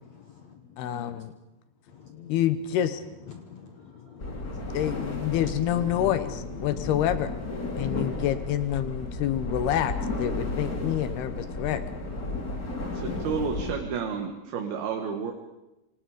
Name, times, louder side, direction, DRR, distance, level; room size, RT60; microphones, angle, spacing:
voice 1, 0.0-1.2 1.9-2.4 3.3-7.7, left 7 dB, 55° left, 2.2 m, -43 dB
voice 2, 0.8-1.3 2.3-3.0 4.7-7.3 7.8-11.8, left 11 dB, 85° left, 3.1 m, -27 dB
sound 1, 4.2-13.7, left 2 dB, 25° left, 2.8 m, -33 dB
voice 3, 12.9-15.3, right 6 dB, 75° right, 3.7 m, -31 dB
28.5 x 27.0 x 5.2 m
omnidirectional pair, 4.5 m